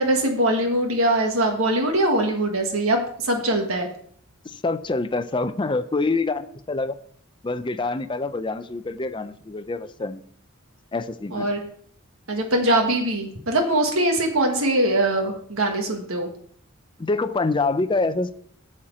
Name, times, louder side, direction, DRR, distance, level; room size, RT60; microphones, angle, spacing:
voice 1, 0.0-3.9 11.3-11.6 12.3-16.3, right 1 dB, 75° right, 3 dB, 1.5 m, -22 dB
voice 2, 4.4-6.9 7.4-10.2 10.9-11.5 17.0-18.3, left 3 dB, 20° left, 11 dB, 0.5 m, -26 dB
8.9 x 4.4 x 7.4 m, 0.62 s
head